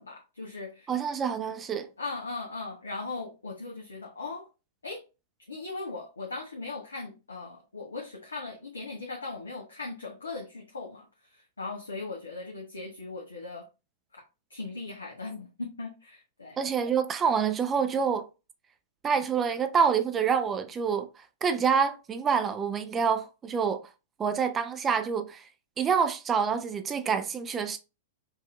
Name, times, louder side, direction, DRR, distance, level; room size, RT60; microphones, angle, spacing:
voice 1, 0.0-0.9 2.0-4.5 4.8-5.0 5.5-13.7 14.1-14.2 14.5-16.6, left 3 dB, 80° left, 0.8 m, -39 dB
voice 2, 0.9-1.9 16.6-18.3 19.0-21.1 21.4-23.8 24.2-25.4 25.8-27.8, right 6 dB, 20° right, 0.6 m, -27 dB
5.5 x 2.7 x 2.3 m
figure-of-eight pair, 100°, 0 cm